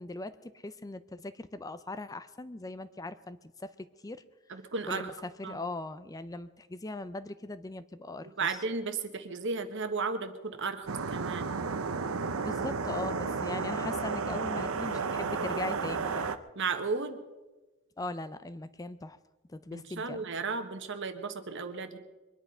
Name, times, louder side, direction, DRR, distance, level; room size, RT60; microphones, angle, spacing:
voice 1, 0.0-4.2 4.9-8.6 12.4-16.3 18.0-19.2 19.5-20.3, left 2 dB, 15° left, 13 dB, 0.5 m, -40 dB
voice 2, 4.5-5.1 5.4-5.6 8.2-11.5 16.5-17.2 19.7-22.0, right 4 dB, 60° right, 8 dB, 1.4 m, -34 dB
sound 1, 10.9-16.4, right 4 dB, 80° right, 0.8 m, -32 dB
23.0 x 10.5 x 5.5 m, 1.2 s
head